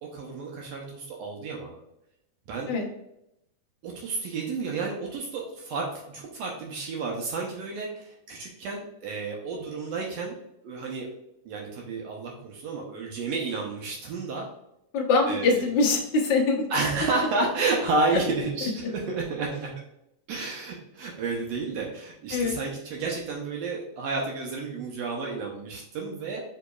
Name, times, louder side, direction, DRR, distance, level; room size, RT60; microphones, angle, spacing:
voice 1, 0.0-1.8 2.5-2.7 3.8-10.4 10.6-11.1 11.4-14.5 15.3-15.7 16.7-19.7 20.3-26.4, right 3 dB, 75° right, -1 dB, 1.7 m, -31 dB
voice 2, 14.9-16.6 22.3-22.6, left 3 dB, 85° left, -3 dB, 1.0 m, -23 dB
6.5 x 3.0 x 2.3 m, 0.81 s
omnidirectional pair, 3.4 m